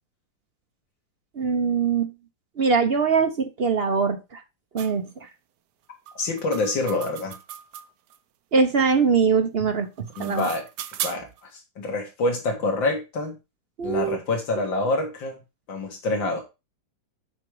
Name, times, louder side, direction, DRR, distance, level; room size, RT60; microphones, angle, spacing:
voice 1, 1.3-2.1 2.6-4.4 4.7-5.3 8.5-10.5 13.8-14.2, right 5 dB, 50° right, 6 dB, 0.7 m, -22 dB
sound 1, 4.8-4.9 6.1-8.2 9.8-11.4, right 10 dB, 70° right, 1.2 m, -36 dB
voice 2, 6.2-7.3 10.2-10.6 11.0-13.4 13.8-15.4 15.7-16.4, left 2 dB, 85° left, 2 dB, 2.5 m, -26 dB
7.6 x 5.2 x 4.7 m, 0.25 s
omnidirectional pair, 2.0 m